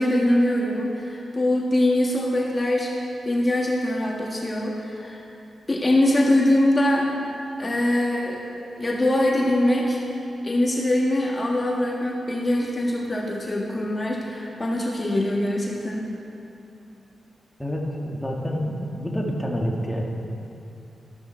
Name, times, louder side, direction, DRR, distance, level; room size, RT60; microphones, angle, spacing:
voice 1, 0.0-5.2 5.7-7.3 7.6-8.4 8.8-10.0 10.4-16.1, left 1 dB, 30° left, -2 dB, 1.6 m, -23 dB
voice 2, 17.6-20.1, equal, 10° left, -1 dB, 1.8 m, -28 dB
13.5 x 12.5 x 4.5 m, 2.8 s
cardioid pair, 70°, 0 cm